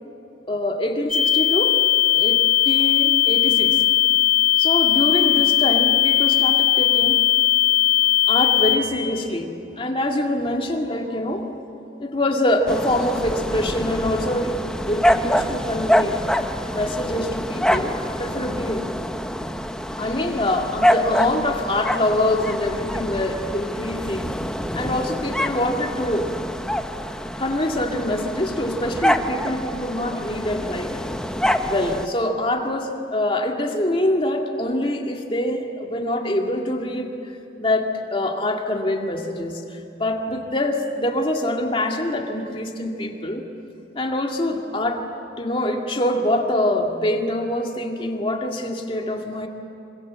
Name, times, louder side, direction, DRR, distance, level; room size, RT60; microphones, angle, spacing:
voice 1, 0.5-1.8 2.1-3.8 4.6-7.2 8.3-9.5 9.8-11.4 12.0-16.2 16.7-19.0 20.0-24.3 24.7-26.3 27.4-30.9 31.6-37.1 37.6-43.4 44.0-45.0 45.4-49.5, left 1 dB, 30° left, 2 dB, 2.2 m, -25 dB
sound 1, 1.1-8.8, left 13 dB, 45° left, 2.3 m, -18 dB
sound 2, 12.7-32.1, equal, 5° left, 0.8 m, -26 dB
26.0 x 25.5 x 7.6 m, 2.8 s
head